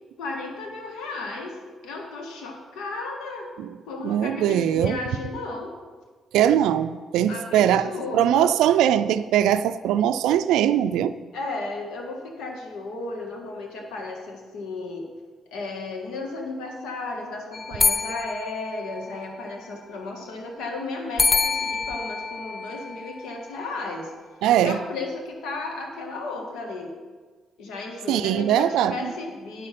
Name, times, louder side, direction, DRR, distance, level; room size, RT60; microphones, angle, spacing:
voice 1, 0.2-1.6 1.8-3.5 3.9-5.7 7.3-8.6 11.3-15.1 15.5-24.1 24.6-27.0 27.6-29.7, left 3 dB, 85° left, 2 dB, 1.7 m, -34 dB
voice 2, 4.0-5.0 6.3-7.9 8.1-11.1 24.4-24.8 28.1-29.1, right 10 dB, 90° right, 10 dB, 0.3 m, -21 dB
sound 1, 17.5-19.5 21.2-23.6, left 4 dB, 25° left, 0.4 m, -27 dB
9.3 x 6.4 x 5.8 m, 1.4 s
cardioid pair, 90°, 0 cm